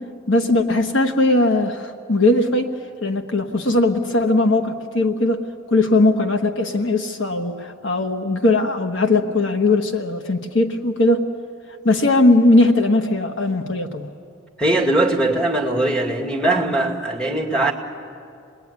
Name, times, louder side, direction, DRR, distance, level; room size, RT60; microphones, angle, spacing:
voice 1, 0.3-2.7 3.0-5.4 5.7-11.3 11.8-14.1, left 2 dB, 55° left, 5 dB, 1.2 m, -19 dB
voice 2, 14.6-17.7, right 2 dB, 5° left, -3 dB, 2.2 m, -20 dB
27.5 x 21.0 x 9.6 m, 2.5 s
head